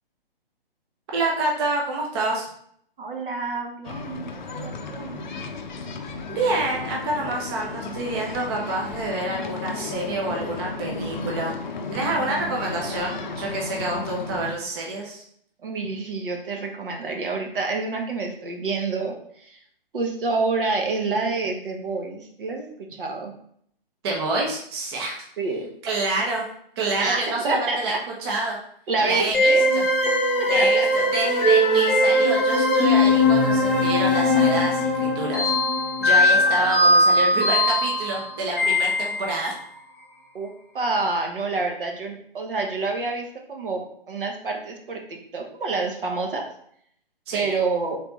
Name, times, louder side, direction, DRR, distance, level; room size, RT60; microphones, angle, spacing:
voice 1, 1.1-2.5 6.3-11.5 11.9-15.2 24.0-25.2 25.8-26.4 26.8-28.0 28.2-28.6 29.0-29.8 30.5-35.5 36.0-39.5 47.3-47.6, right 2 dB, 25° right, -1 dB, 0.6 m, -27 dB
voice 2, 3.0-5.2 15.6-19.6 19.9-23.3 25.4-25.7 27.0-28.0 28.9-29.6 30.4-30.9 36.5-36.7 40.3-40.5 40.7-46.4 47.3-48.0, right 3 dB, 65° right, 1 dB, 1.0 m, -28 dB
sound 1, 3.8-14.5, left 3 dB, 50° left, 0.5 m, -34 dB
sound 2, 29.3-39.5, left 1 dB, ahead, 0.9 m, -20 dB
3.5 x 3.3 x 3.9 m, 0.66 s
figure-of-eight pair, 135°, 30 cm